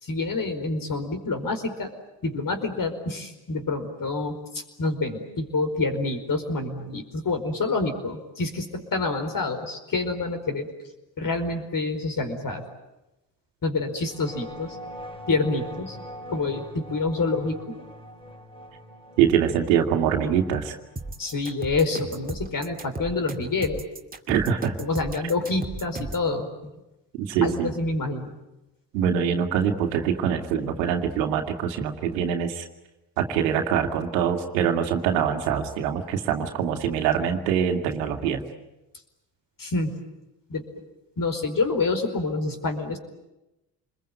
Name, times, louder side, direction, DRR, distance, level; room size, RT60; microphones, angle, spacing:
voice 1, 0.0-1.9 2.2-10.7 11.2-12.6 13.6-14.8 15.3-16.0 16.3-17.7 21.2-23.8 24.8-26.5 27.4-28.3 39.6-39.9 40.5-40.6 41.2-43.0, left 3 dB, 40° left, 7 dB, 4.9 m, -27 dB
sound 1, 14.0-22.7, equal, 10° left, 5.3 m, -43 dB
voice 2, 19.2-20.7 24.3-24.7 27.1-27.7 28.9-32.7 33.2-38.4, right 8 dB, 90° right, 5 dB, 2.2 m, -24 dB
sound 2, 21.0-26.3, right 2 dB, 15° right, 2.6 m, -35 dB
27.0 x 21.5 x 9.2 m, 0.97 s
hypercardioid pair, 65°, 50 cm